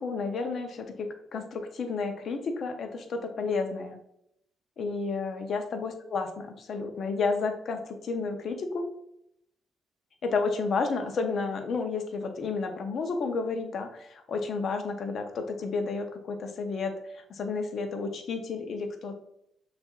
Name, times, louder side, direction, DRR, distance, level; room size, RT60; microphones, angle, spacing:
voice 1, 0.0-4.0 4.8-8.9 10.2-19.2, left 4 dB, 60° left, 5 dB, 0.7 m, -31 dB
6.2 x 2.5 x 2.4 m, 0.76 s
supercardioid pair, 65°, 0 cm